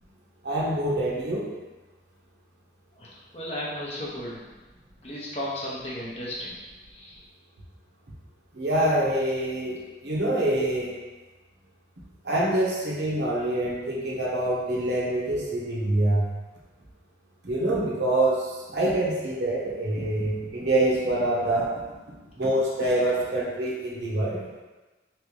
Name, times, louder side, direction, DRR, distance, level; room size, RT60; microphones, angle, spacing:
voice 1, 0.4-1.5 8.5-9.8 10.0-10.9 12.2-16.3 17.4-21.7 22.4-24.6, right 1 dB, 70° right, -5 dB, 1.0 m, -25 dB
voice 2, 3.0-4.4 5.0-6.5 6.9-7.2, left 1 dB, 35° left, -5 dB, 0.7 m, -34 dB
3.4 x 3.0 x 3.2 m, 1.2 s
head